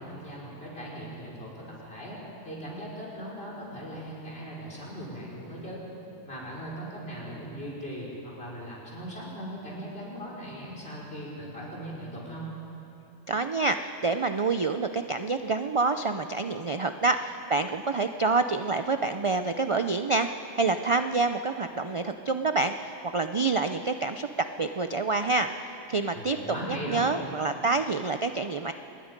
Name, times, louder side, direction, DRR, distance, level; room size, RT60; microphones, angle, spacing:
voice 1, 0.0-5.8 6.2-12.5 26.1-27.2, equal, 45° left, -5 dB, 5.2 m, -39 dB
voice 2, 13.3-24.3 24.6-25.5 25.9-26.4 26.7-28.7, right 3 dB, 55° right, 8 dB, 0.3 m, -27 dB
26.5 x 20.5 x 5.2 m, 2.9 s
omnidirectional pair, 1.4 m